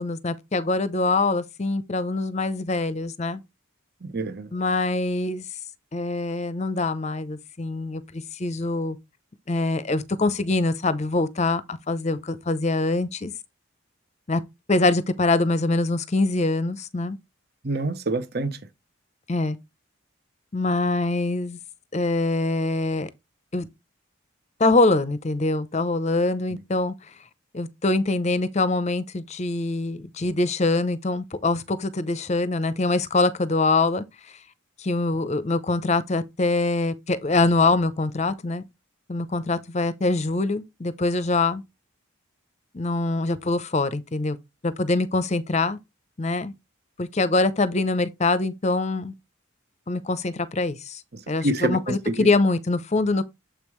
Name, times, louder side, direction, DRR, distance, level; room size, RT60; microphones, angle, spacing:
voice 1, 0.0-3.4 4.5-5.5 5.9-9.0 9.5-13.3 14.3-14.4 14.7-17.2 19.3-19.6 20.5-21.6 21.9-23.1 23.5-23.7 24.6-26.9 27.5-34.0 34.8-38.6 39.1-41.6 42.7-44.4 44.6-45.8 46.2-46.5 47.0-49.1 49.9-51.0 51.3-53.2, left 2 dB, 30° left, 0.7 m, -24 dB
voice 2, 4.0-4.5 17.6-18.6 51.4-52.3, right 2 dB, 50° right, 1.0 m, -26 dB
7.3 x 5.4 x 3.1 m
head